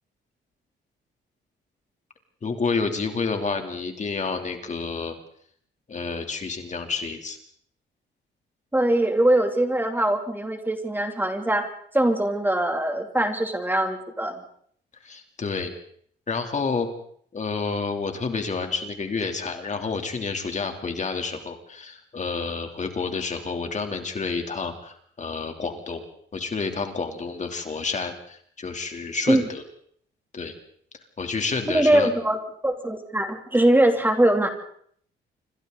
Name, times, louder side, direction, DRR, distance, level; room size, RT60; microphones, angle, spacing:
voice 1, 2.4-5.1 5.9-7.4 15.0-15.7 16.3-16.9 17.3-26.1 26.3-29.6 30.3-30.5 31.2-32.1, left 4 dB, 35° left, 5 dB, 3.2 m, -29 dB
voice 2, 8.7-11.7 11.9-14.4 29.3-29.4 31.7-34.5, right 1 dB, 10° right, 5 dB, 2.9 m, -22 dB
27.5 x 25.0 x 4.0 m, 0.62 s
cardioid pair, 90°, 20 cm